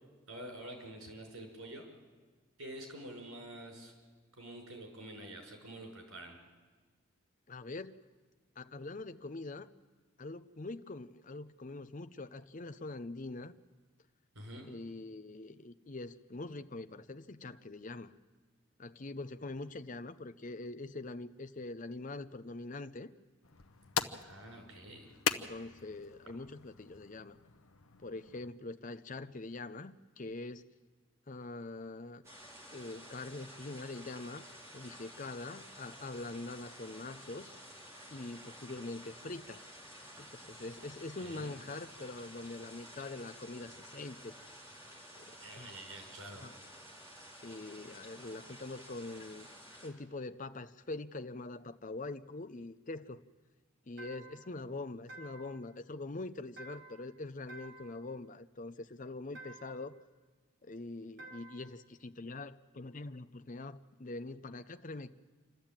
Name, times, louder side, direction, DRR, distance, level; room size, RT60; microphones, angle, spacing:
voice 1, 0.3-1.9 2.6-3.9 4.3-6.4 14.4-14.7 24.2-25.1 41.2-41.5 45.4-46.5, right 1 dB, 85° right, 2 dB, 5.3 m, -47 dB
voice 2, 7.5-8.0 8.6-9.7 10.2-13.5 14.7-18.1 18.8-23.1 25.3-27.4 28.0-30.6 31.3-32.2 32.7-34.5 34.7-37.5 38.1-39.6 40.3-44.3 45.2-45.7 46.4-46.5 47.4-49.5 49.8-53.2 53.9-59.9 60.6-65.1, left 2 dB, 35° left, 10 dB, 0.6 m, -44 dB
sound 1, 23.4-28.5, left 6 dB, 90° left, 0.9 m, -40 dB
sound 2, 32.2-49.9, equal, 15° right, 3.2 m, -52 dB
sound 3, 54.0-54.5 55.1-55.6 56.6-57.1 57.5-58.0 59.3-59.9 61.2-61.7, right 2 dB, 65° right, 3.2 m, -51 dB
27.5 x 12.5 x 8.9 m, 1.4 s
head